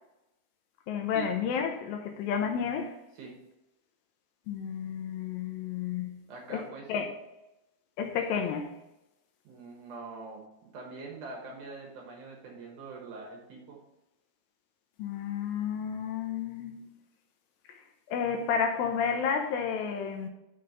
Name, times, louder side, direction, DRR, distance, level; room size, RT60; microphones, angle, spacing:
voice 1, 0.9-2.9 4.5-6.2 6.5-6.6 6.9-7.1 8.0-8.7 15.0-16.9 17.7-17.8 18.1-20.3, left 7 dB, 80° left, 2.3 m, -31 dB
voice 2, 6.3-7.0 9.4-13.8, right 3 dB, 65° right, 2.4 m, -44 dB
6.4 x 4.3 x 6.5 m
omnidirectional pair, 4.5 m